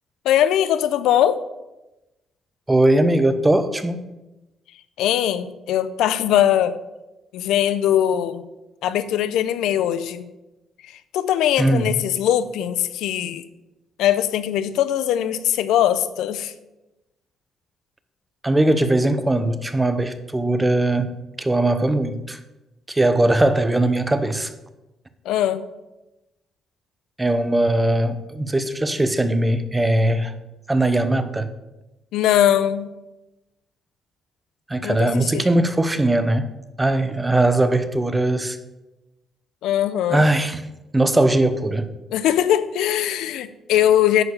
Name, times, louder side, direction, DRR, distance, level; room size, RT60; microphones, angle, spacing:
voice 1, 0.2-1.4 5.0-6.8 7.3-8.4 8.8-10.2 10.8-13.4 14.0-16.5 25.2-25.7 32.1-32.9 34.8-35.4 39.6-40.3 42.1-44.2, left 11 dB, 90° left, 14 dB, 0.6 m, -21 dB
voice 2, 2.7-4.0 11.6-11.9 18.4-22.4 22.9-24.5 27.2-30.4 30.7-31.5 34.7-36.5 36.8-38.6 40.1-40.6 40.9-41.9, right 1 dB, 15° right, 11 dB, 0.9 m, -20 dB
10.5 x 4.7 x 7.0 m, 1.0 s
cardioid pair, 90°, 0 cm